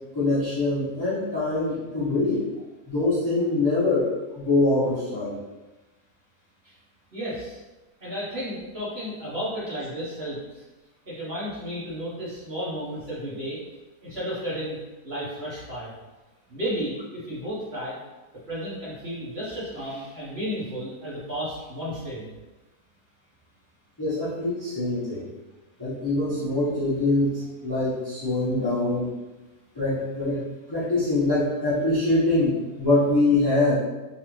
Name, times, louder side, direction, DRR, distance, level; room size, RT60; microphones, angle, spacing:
voice 1, 0.1-2.4 2.9-5.4 24.0-25.3 25.8-29.1 29.7-33.7, left 2 dB, 20° left, -10 dB, 0.8 m, -24 dB
voice 2, 7.1-7.6 8.0-10.6 11.0-13.6 14.0-14.8 15.0-15.9 16.5-17.9 18.5-22.3, equal, 40° right, -8 dB, 1.3 m, -33 dB
3.4 x 3.3 x 3.1 m, 1.1 s
omnidirectional pair, 1.8 m